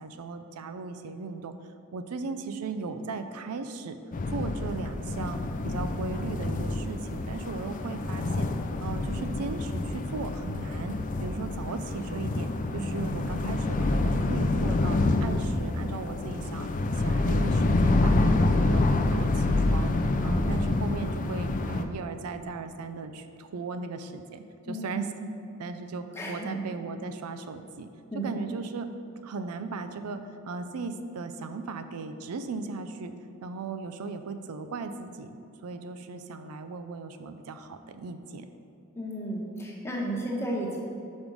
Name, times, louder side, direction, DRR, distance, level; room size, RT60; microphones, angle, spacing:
voice 1, 0.0-1.5 1.9-4.0 4.3-8.5 8.8-16.7 17.0-18.8 19.1-19.9 20.2-25.1 25.6-27.9 28.2-28.9 29.2-33.1 33.4-38.5, right 4 dB, 85° right, 9 dB, 0.4 m, -37 dB
sound 1, 4.1-21.9, left 2 dB, 35° left, 0.4 m, -27 dB
voice 2, 24.6-25.1 26.1-26.6 28.1-28.3 39.0-40.8, right 1 dB, 10° left, -3 dB, 1.0 m, -33 dB
5.3 x 5.2 x 6.1 m, 2.8 s
head